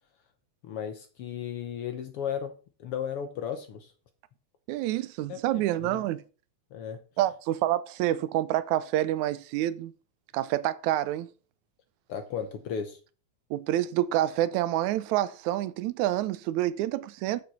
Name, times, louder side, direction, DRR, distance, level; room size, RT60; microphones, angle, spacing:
voice 1, 0.6-2.5 2.8-3.9 5.3-6.0 6.7-7.0 12.1-13.0, left 8 dB, 65° left, 1.5 m, -35 dB
voice 2, 4.7-6.2 7.2-9.9 10.3-11.3 13.5-17.4, right 14 dB, 80° right, 2.0 m, -27 dB
7.7 x 7.0 x 5.4 m
omnidirectional pair, 3.4 m